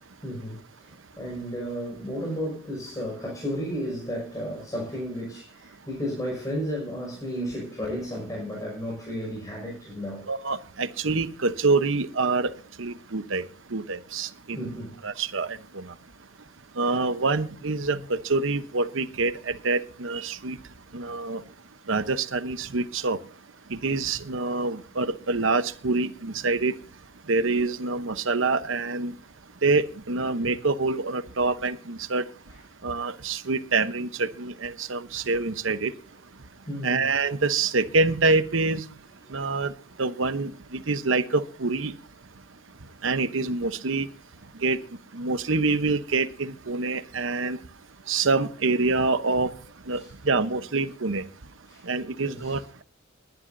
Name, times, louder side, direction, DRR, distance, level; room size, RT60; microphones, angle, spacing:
voice 1, 0.2-10.2 14.6-15.0 17.9-18.0 32.5-32.6 36.7-37.0 39.2-39.4 49.9-50.2 51.7-51.8 52.2-52.6, equal, 20° left, 5.7 m, -33 dB
voice 2, 10.3-12.5 12.8-13.4 13.7-14.8 15.0-15.9 16.8-20.6 20.9-21.4 21.9-23.2 23.7-26.7 27.3-29.1 29.6-32.2 32.8-35.9 36.8-38.8 39.3-39.7 40.0-41.9 43.0-44.1 44.6-44.8 45.1-47.6 48.1-49.5 49.9-51.2 51.8-52.8, right 3 dB, 70° right, 0.9 m, -26 dB
21.0 x 10.5 x 2.7 m
head